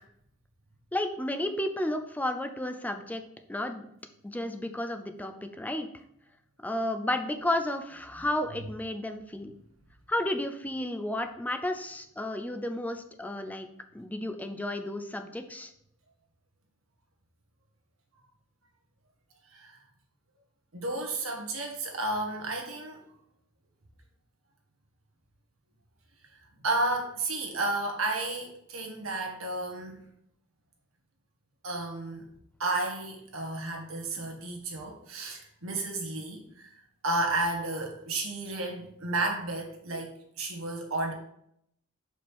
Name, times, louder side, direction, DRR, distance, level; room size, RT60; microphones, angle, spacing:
voice 1, 0.9-3.2 3.5-3.9 4.2-5.9 6.6-9.5 10.1-13.7 13.9-15.7, left 1 dB, 10° left, 8 dB, 0.4 m, -32 dB
voice 2, 20.7-23.0 26.6-30.0 31.6-32.2 32.6-36.7 37.0-40.1 40.4-41.1, right 2 dB, 85° right, 2 dB, 1.5 m, -32 dB
6.2 x 5.0 x 3.5 m, 0.73 s
head